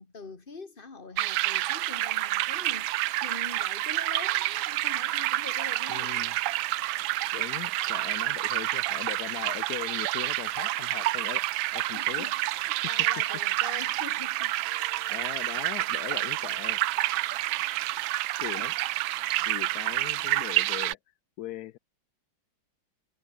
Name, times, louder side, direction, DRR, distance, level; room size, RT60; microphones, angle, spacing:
voice 1, 0.0-6.2 12.0-15.3 17.2-17.4 19.4-20.3, left 4 dB, 25° left, 2.1 m, -45 dB
sound 1, 1.2-20.9, right 16 dB, 80° right, 1.4 m, -29 dB
voice 2, 5.9-6.4 7.3-11.5 11.7-12.3 15.1-16.8 18.4-18.7 19.5-21.0 21.4-21.8, left 14 dB, 75° left, 0.8 m, -39 dB
omnidirectional pair, 2.2 m